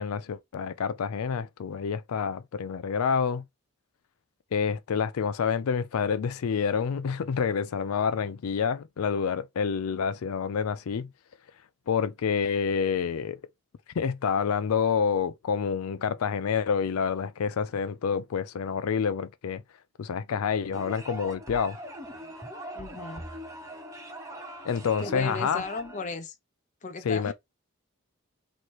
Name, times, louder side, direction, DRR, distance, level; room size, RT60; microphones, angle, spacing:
voice 1, 0.0-3.4 4.5-11.1 11.9-13.4 13.9-19.6 20.0-21.8 24.6-25.6 27.0-27.3, left 6 dB, 85° left, 0.4 m, -28 dB
sound 1, 20.7-26.1, equal, 15° right, 0.8 m, -41 dB
voice 2, 22.7-23.2 25.0-26.4 26.8-27.3, left 3 dB, 35° left, 0.5 m, -35 dB
3.1 x 3.1 x 4.2 m
head